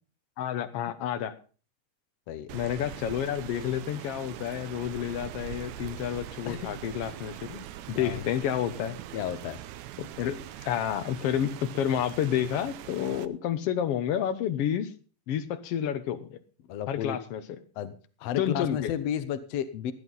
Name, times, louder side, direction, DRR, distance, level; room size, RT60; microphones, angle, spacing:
voice 1, 0.4-1.4 2.5-7.6 7.9-9.0 10.0-14.9 15.3-16.4 16.9-17.4 18.4-18.9, left 10 dB, 90° left, 1.3 m, -30 dB
voice 2, 2.3-2.6 6.5-6.6 8.0-8.2 9.1-9.6 16.7-17.2 17.8-19.9, left 9 dB, 75° left, 1.5 m, -33 dB
Rain, 2.5-13.3, right 12 dB, 75° right, 1.8 m, -42 dB
17.0 x 11.0 x 4.0 m
omnidirectional pair, 4.0 m